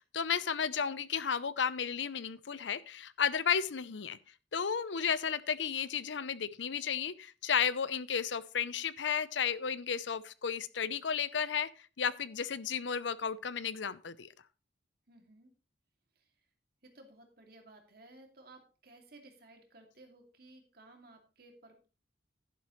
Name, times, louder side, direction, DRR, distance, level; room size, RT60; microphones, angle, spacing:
voice 1, 0.0-4.2 4.5-11.7 12.0-14.3, left 7 dB, 85° left, 17 dB, 0.6 m, -33 dB
voice 2, 15.1-15.5 16.2-16.3 16.8-21.9, right 2 dB, 55° right, 3 dB, 2.5 m, -57 dB
11.5 x 10.5 x 3.1 m, 0.34 s
head